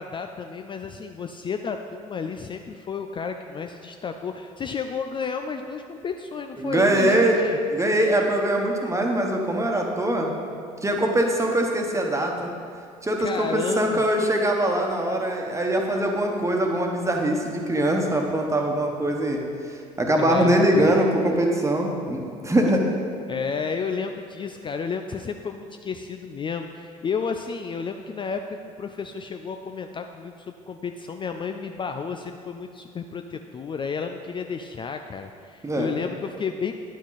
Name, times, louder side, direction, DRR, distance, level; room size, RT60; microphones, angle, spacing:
voice 1, 0.0-7.6 13.2-14.0 20.2-20.9 23.3-36.7, left 5 dB, 25° left, 6 dB, 0.4 m, -32 dB
voice 2, 6.6-7.4 7.7-10.4 10.8-12.5 13.0-22.9 35.6-35.9, right 1 dB, 15° right, 1 dB, 1.3 m, -22 dB
9.6 x 6.1 x 4.1 m, 2.3 s
hypercardioid pair, 60°, 18 cm